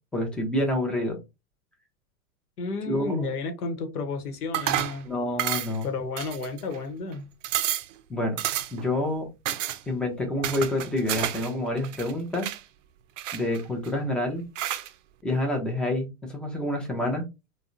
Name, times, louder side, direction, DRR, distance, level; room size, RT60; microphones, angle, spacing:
voice 1, 0.1-1.2 2.9-3.3 5.0-5.9 8.1-8.4 8.7-9.2 9.9-12.5 13.3-14.4 15.2-17.3, left 1 dB, ahead, 0.5 m, -28 dB
voice 2, 2.6-5.1 5.8-7.3, left 4 dB, 80° left, 1.0 m, -32 dB
sound 1, 4.5-5.0 5.4-5.8 6.2-6.8 7.1-7.2 7.4-7.9 8.4-8.9 9.5-9.8 10.4-11.5 11.8-12.6 13.2-13.9 14.6-14.9, right 12 dB, 55° right, 0.5 m, -30 dB
3.5 x 2.2 x 2.5 m
hypercardioid pair, 110°, 45 cm